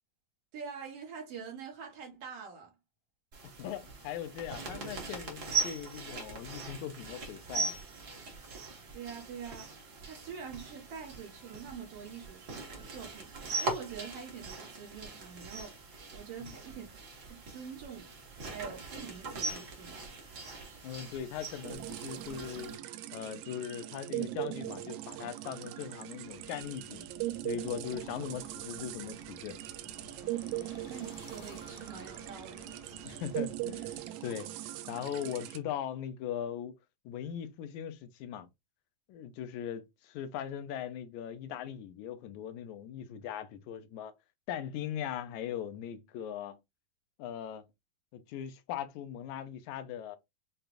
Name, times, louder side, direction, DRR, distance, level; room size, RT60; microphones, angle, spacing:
voice 1, 0.5-2.8 8.9-9.7 10.0-15.8 16.1-17.0 17.3-18.1 18.4-20.1 30.9-33.2, right 6 dB, 60° right, 1.9 m, -45 dB
sound 1, 3.3-22.8, right 3 dB, 45° right, 1.4 m, -40 dB
voice 2, 3.6-7.8 16.4-16.6 20.8-22.8 23.1-27.1 27.4-29.6 33.0-34.6 34.9-36.7 37.1-38.5 39.1-44.2 44.5-46.6 47.2-47.7 48.1-50.2, left 9 dB, 80° left, 2.0 m, -40 dB
sound 2, 21.6-35.6, right 15 dB, 80° right, 1.8 m, -40 dB
sound 3, 26.2-34.1, left 2 dB, 50° left, 1.3 m, -55 dB
6.7 x 2.4 x 2.4 m
omnidirectional pair, 3.4 m